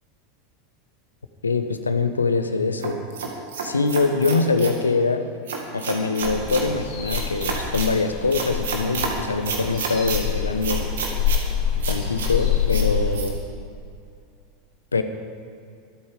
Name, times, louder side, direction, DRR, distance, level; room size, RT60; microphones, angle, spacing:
voice 1, 1.4-3.0 3.6-5.3 5.7-10.9 11.9-13.4 14.9-15.0, left 4 dB, 80° left, 9 dB, 1.0 m, -23 dB
sound 1, 2.8-4.8 5.5-6.7 7.1-7.9 8.3-9.1 9.4-10.2 10.6-11.4 11.8-12.3 12.7-12.9 13.1-13.3, right 5 dB, 65° right, 2.1 m, -30 dB
sound 2, 6.2-13.2, left 8 dB, 55° left, 4.7 m, -26 dB
24.5 x 8.8 x 5.1 m, 2.4 s
figure-of-eight pair, 85°, 0 cm